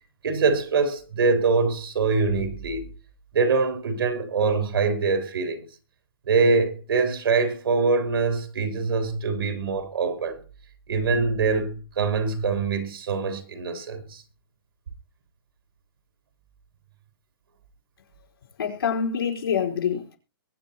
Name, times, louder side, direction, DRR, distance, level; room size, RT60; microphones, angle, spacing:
voice 1, 0.2-2.9 3.3-5.7 6.3-10.4 10.9-14.2, right 4 dB, 80° right, 3.4 m, -24 dB
voice 2, 18.6-20.2, left 7 dB, 85° left, 4.5 m, -26 dB
22.5 x 8.9 x 2.9 m
hypercardioid pair, 160°, 12 cm